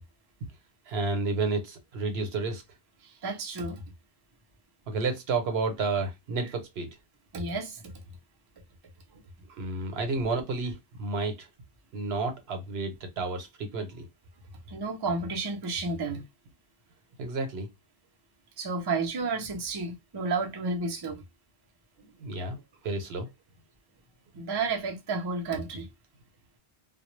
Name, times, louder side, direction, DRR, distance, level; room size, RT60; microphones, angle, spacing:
voice 1, 0.9-2.6 4.9-6.9 9.6-11.5 11.9-14.1 17.2-17.7 22.2-22.6 22.8-23.3, right 3 dB, 70° right, 0.9 m, -31 dB
voice 2, 3.0-3.8 7.3-7.9 14.7-16.2 18.6-21.2 24.4-25.9, right 3 dB, 40° right, 0.4 m, -31 dB
2.1 x 2.0 x 3.0 m
omnidirectional pair, 1.1 m